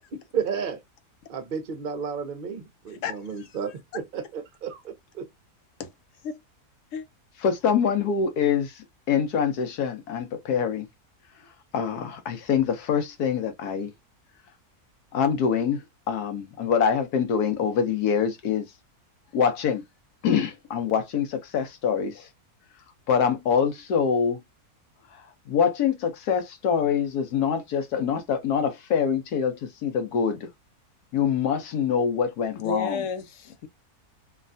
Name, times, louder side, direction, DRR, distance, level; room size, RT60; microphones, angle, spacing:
voice 1, 0.3-0.8 1.3-3.7 4.1-5.2, right 7 dB, 50° right, 0.7 m, -32 dB
voice 2, 2.9-3.6 5.8-5.9 6.2-6.4 6.9-7.0 32.5-33.7, left 5 dB, 65° left, 0.9 m, -32 dB
voice 3, 7.4-8.7 9.1-10.9 11.7-13.9 15.1-18.7 19.3-19.8 20.2-22.2 23.1-24.4 25.5-30.4 31.1-33.0, left 7 dB, 80° left, 1.3 m, -25 dB
3.2 x 2.3 x 2.5 m
omnidirectional pair, 1.6 m